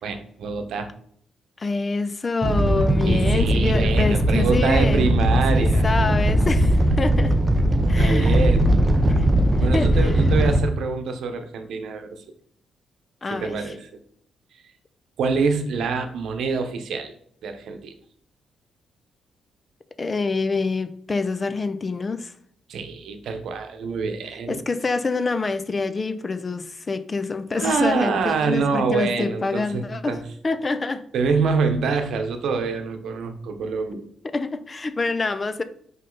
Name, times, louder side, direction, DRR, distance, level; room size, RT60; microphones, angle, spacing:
voice 1, 0.0-0.9 3.0-5.8 8.0-8.7 9.6-12.2 13.3-13.9 15.2-17.1 17.4-17.9 22.7-24.6 27.5-30.2 31.1-34.0, right 4 dB, 75° right, 7 dB, 1.0 m, -25 dB
voice 2, 1.6-5.1 5.5-7.4 7.9-8.5 9.1-9.3 9.6-10.2 13.2-13.6 20.0-22.3 24.5-30.2 30.4-31.0 34.3-35.6, left 3 dB, 30° left, 12 dB, 0.5 m, -26 dB
Animal, 2.4-10.6, right 1 dB, 20° right, 0.8 m, -19 dB
5.5 x 5.3 x 3.9 m, 0.64 s
cardioid pair, 120°, 0 cm